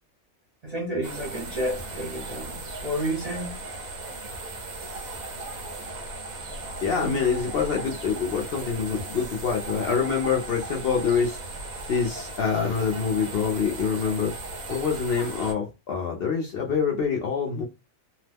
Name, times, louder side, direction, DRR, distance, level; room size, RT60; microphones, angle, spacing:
voice 1, 0.6-3.5 4.9-5.2 6.8-7.2, equal, 35° right, 0.7 m, -31 dB
sound 1, 1.0-15.5, right 2 dB, 85° right, 1.3 m, -37 dB
voice 2, 6.8-11.4 11.9-14.3 14.7-17.6, left 6 dB, 60° left, 0.6 m, -26 dB
2.8 x 2.0 x 3.3 m
omnidirectional pair, 1.4 m